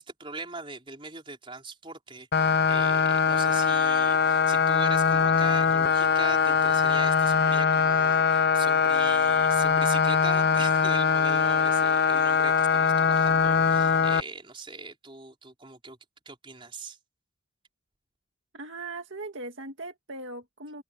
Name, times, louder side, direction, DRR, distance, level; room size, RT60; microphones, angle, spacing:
voice 1, 0.0-16.0 16.2-17.0, right 4 dB, 25° right, 4.7 m, -41 dB
sound 1, 2.3-14.2, left 5 dB, 50° left, 0.8 m, -22 dB
voice 2, 18.5-20.8, right 2 dB, 60° right, 2.0 m, -39 dB
open air
head